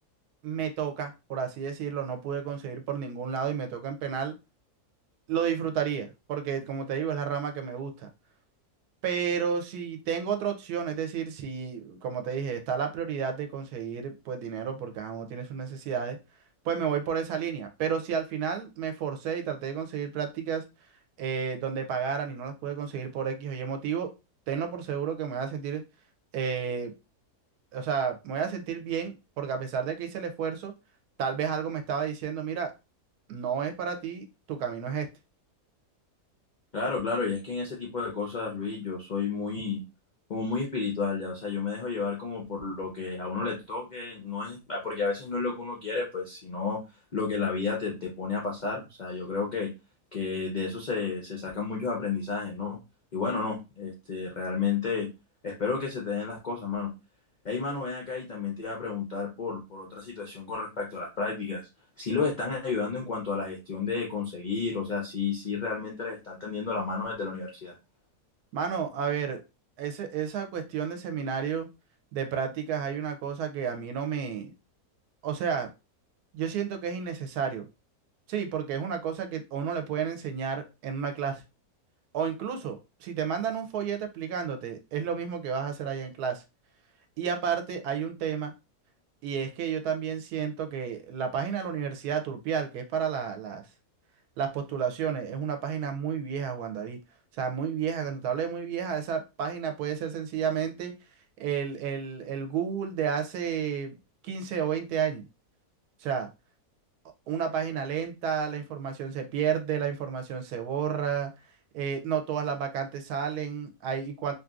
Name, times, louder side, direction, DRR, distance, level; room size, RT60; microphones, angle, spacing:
voice 1, 0.4-4.3 5.3-8.1 9.0-16.2 16.6-20.6 21.2-24.1 24.5-25.8 26.3-26.9 27.7-30.7 31.2-32.7 33.3-35.1 68.5-69.4 69.8-71.7 72.1-74.5 75.2-75.7 76.3-77.7 78.3-81.4 82.1-86.4 87.2-88.5 89.2-93.6 94.4-97.0 97.3-100.9 101.4-104.0 104.2-105.2 106.0-106.3 107.3-111.3 111.7-114.3, right 7 dB, 85° right, 6 dB, 1.1 m, -31 dB
voice 2, 36.7-39.8 40.3-46.8 47.1-49.7 50.1-52.8 53.1-55.1 55.4-56.9 57.4-61.6 62.0-67.7, left 4 dB, 85° left, -1 dB, 0.4 m, -31 dB
2.8 x 2.6 x 2.3 m, 0.26 s
omnidirectional pair, 1.6 m